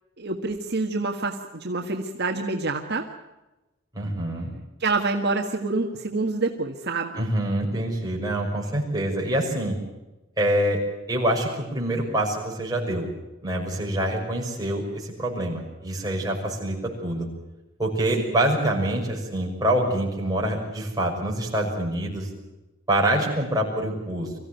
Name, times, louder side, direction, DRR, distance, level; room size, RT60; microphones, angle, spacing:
voice 1, 0.2-3.1 4.8-7.2, right 3 dB, 55° right, 2 dB, 1.6 m, -27 dB
voice 2, 3.9-4.5 7.2-9.8 10.4-10.8 11.1-13.1 13.4-17.3 17.8-22.3 22.9-24.4, right 1 dB, 20° right, -1 dB, 6.1 m, -25 dB
24.0 x 15.5 x 9.2 m, 1.0 s
head